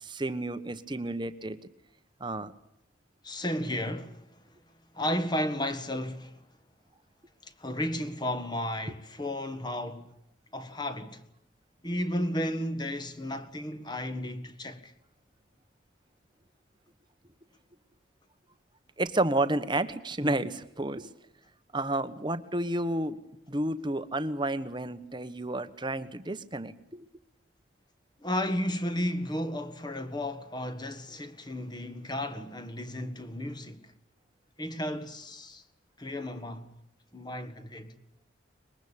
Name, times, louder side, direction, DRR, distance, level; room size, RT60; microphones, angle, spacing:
voice 1, 0.0-1.6 2.2-2.5 19.0-21.1 21.7-23.2 23.5-27.1, right 1 dB, 25° right, 1.2 m, -31 dB
voice 2, 3.2-4.4 4.9-6.4 7.4-10.1 10.5-11.2 11.8-14.9 28.2-33.9 34.6-35.6 36.0-36.7 37.1-38.0, left 1 dB, 20° left, 1.7 m, -33 dB
24.0 x 21.5 x 8.7 m
head